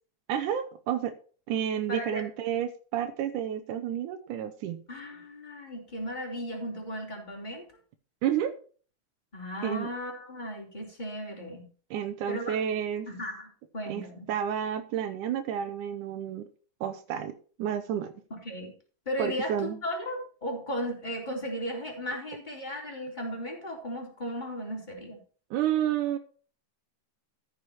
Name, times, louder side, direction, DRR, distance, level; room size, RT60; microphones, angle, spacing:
voice 1, 0.3-1.1 1.5-4.8 8.2-8.5 9.6-9.9 11.9-13.1 13.9-16.5 16.8-18.1 19.2-19.8 25.5-26.2, right 10 dB, 90° right, 8 dB, 2.4 m, -30 dB
voice 2, 1.9-2.2 4.9-7.7 9.3-11.7 12.3-12.6 13.1-14.3 18.3-18.7 19.1-19.5 19.8-25.2, equal, 15° left, 0 dB, 3.8 m, -36 dB
14.0 x 6.7 x 4.4 m, 0.40 s
omnidirectional pair, 3.5 m